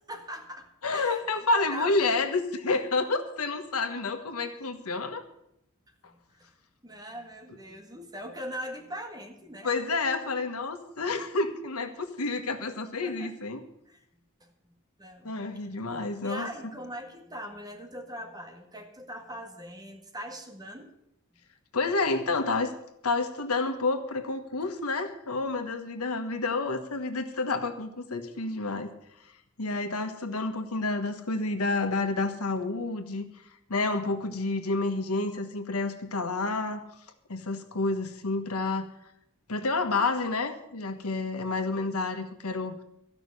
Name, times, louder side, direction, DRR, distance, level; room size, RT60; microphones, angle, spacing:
voice 1, 0.1-0.7 0.9-2.1 6.1-6.5 6.8-9.7 11.0-11.1 13.0-13.3 13.9-14.0 14.4-15.7 16.2-20.9, equal, 20° right, 3 dB, 1.9 m, -41 dB
voice 2, 0.8-5.2 9.6-13.6 15.2-16.5 21.7-22.7 23.0-28.9 29.6-33.2 33.7-36.8 37.3-38.9 39.5-42.8, left 3 dB, 85° left, 7 dB, 1.4 m, -29 dB
14.0 x 6.1 x 9.7 m, 0.79 s
head